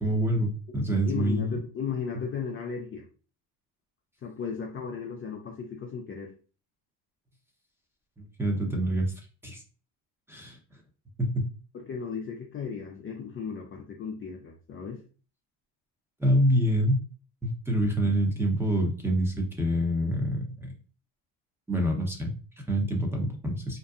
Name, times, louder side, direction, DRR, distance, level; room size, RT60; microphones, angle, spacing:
voice 1, 0.0-1.6 8.2-9.1 9.4-9.6 10.3-10.6 11.2-11.5 16.2-17.0 17.4-20.7 21.7-23.8, equal, 5° right, 1 dB, 0.7 m, -26 dB
voice 2, 0.9-3.1 4.2-6.3 11.7-15.1, left 6 dB, 30° left, 1 dB, 0.4 m, -35 dB
2.6 x 2.2 x 2.4 m, 0.37 s
supercardioid pair, 90°, 45 cm